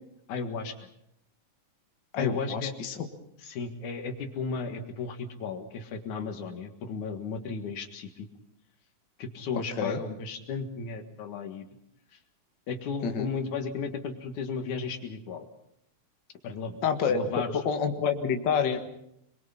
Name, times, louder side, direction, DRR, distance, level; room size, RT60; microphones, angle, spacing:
voice 1, 0.3-0.8 2.1-2.7 3.4-8.3 9.2-11.6 12.1-12.2 12.7-15.5 16.4-16.8 17.1-17.6, left 5 dB, 80° left, 6 dB, 3.2 m, -34 dB
voice 2, 2.1-3.0 9.8-10.0 13.0-13.3 16.8-18.8, left 6 dB, 45° left, 5 dB, 2.0 m, -28 dB
26.5 x 22.5 x 5.8 m, 0.77 s
omnidirectional pair, 3.4 m